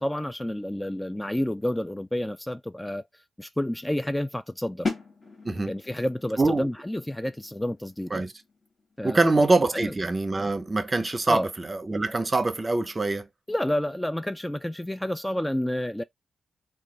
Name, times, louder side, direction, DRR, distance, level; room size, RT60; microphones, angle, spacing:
voice 1, 0.0-3.1 3.4-4.9 5.7-8.2 9.0-9.5 9.7-9.9 11.3-11.5 13.5-16.0, left 1 dB, 10° left, 0.3 m, -29 dB
sound 1, 4.8-10.6, left 3 dB, 40° left, 1.6 m, -39 dB
voice 2, 6.4-6.7 8.1-8.3 9.0-13.3, right 2 dB, 35° right, 0.6 m, -24 dB
3.0 x 2.3 x 3.9 m
cardioid pair, 55°, 0 cm